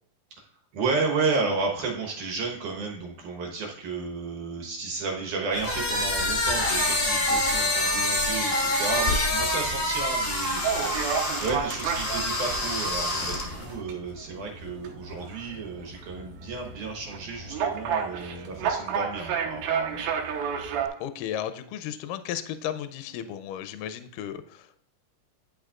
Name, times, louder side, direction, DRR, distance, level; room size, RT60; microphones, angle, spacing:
voice 1, 0.7-11.1 11.4-20.1, right 4 dB, 65° right, 1 dB, 2.4 m, -32 dB
sound 1, 5.5-13.7, left 1 dB, 50° left, 0.7 m, -26 dB
sound 2, 10.6-20.9, right 7 dB, 85° right, 2.7 m, -32 dB
voice 2, 21.0-24.8, left 10 dB, 80° left, 11 dB, 2.0 m, -34 dB
10.0 x 6.3 x 2.4 m, 0.70 s
omnidirectional pair, 4.2 m